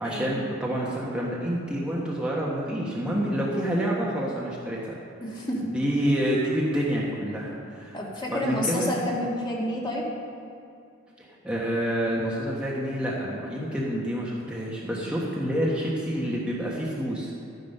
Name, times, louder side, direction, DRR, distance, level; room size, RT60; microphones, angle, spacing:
voice 1, 0.0-5.0 5.6-8.0 8.3-8.9 11.2-17.3, equal, 5° right, -5 dB, 1.4 m, -28 dB
voice 2, 5.2-5.8 7.9-10.1, left 1 dB, 25° left, -3 dB, 2.0 m, -29 dB
12.5 x 9.3 x 5.5 m, 2.5 s
head